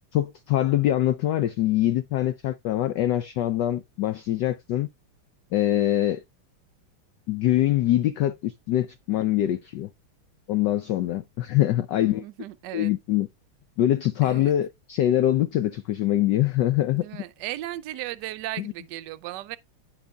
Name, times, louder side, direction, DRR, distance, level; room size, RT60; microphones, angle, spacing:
voice 1, 0.1-4.9 5.5-6.2 7.3-9.9 10.5-12.2 12.7-13.3 13.8-17.2, left 13 dB, 70° left, 1.1 m, -24 dB
voice 2, 12.0-12.9 14.2-14.5 16.9-19.6, right 15 dB, 75° right, 1.0 m, -36 dB
15.0 x 5.3 x 2.3 m
omnidirectional pair, 2.3 m